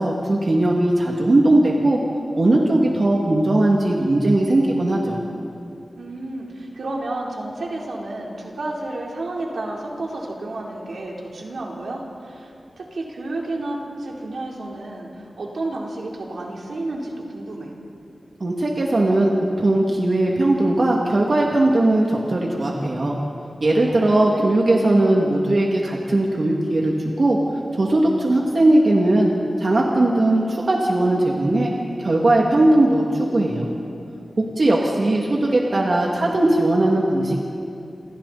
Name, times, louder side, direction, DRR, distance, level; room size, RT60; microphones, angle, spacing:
voice 1, 0.0-2.0 2.3-5.2 18.4-19.3 19.6-23.2 23.6-27.4 27.8-29.3 29.6-31.7 32.0-33.7 34.4-37.4, right 1 dB, 50° right, -2 dB, 2.7 m, -19 dB
voice 2, 6.0-17.7 23.8-24.5, right 2 dB, 80° right, -2 dB, 4.1 m, -31 dB
29.0 x 26.5 x 4.4 m, 2.7 s
wide cardioid pair, 100°, 0 cm